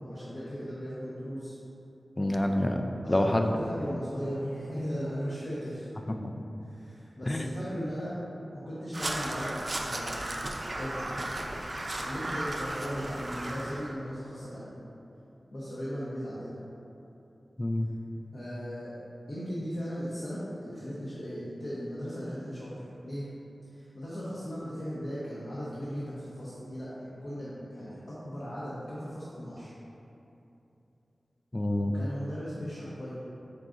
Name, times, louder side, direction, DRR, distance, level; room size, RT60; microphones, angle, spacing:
voice 1, 0.0-1.5 3.0-5.9 6.6-8.2 8.5-10.2 10.5-11.3 12.0-14.7 15.5-16.6 18.3-18.9 19.3-23.3 23.7-29.7 31.8-33.2, equal, 70° left, -10 dB, 0.8 m, -37 dB
voice 2, 2.2-3.5 6.2-6.3 7.3-7.5 17.6-17.9 31.5-31.9, left 1 dB, 30° left, 4 dB, 0.3 m, -27 dB
Crow, 8.9-13.9, right 1 dB, 45° right, 0.4 m, -35 dB
4.7 x 3.7 x 2.5 m, 2.9 s
cardioid pair, 50°, 0 cm